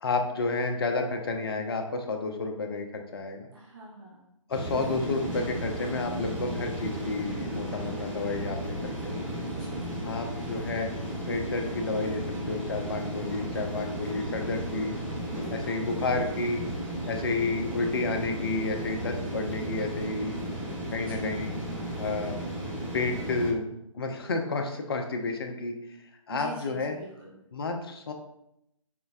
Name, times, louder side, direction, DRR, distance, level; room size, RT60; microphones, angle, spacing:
voice 1, 0.0-3.5 4.5-9.2 10.0-10.9 11.3-14.9 15.5-16.6 17.1-20.3 20.9-21.5 22.0-22.4 22.9-25.7 26.3-27.0 27.5-28.1, left 3 dB, 45° left, 4 dB, 0.4 m, -31 dB
voice 2, 3.5-4.3 9.6-10.2 21.0-21.4 26.3-27.4, right 2 dB, 40° right, -6 dB, 0.8 m, -45 dB
sound 1, 4.5-23.5, right 1 dB, 5° right, 0.5 m, -34 dB
4.4 x 2.0 x 2.3 m, 0.81 s
figure-of-eight pair, 140°, 18 cm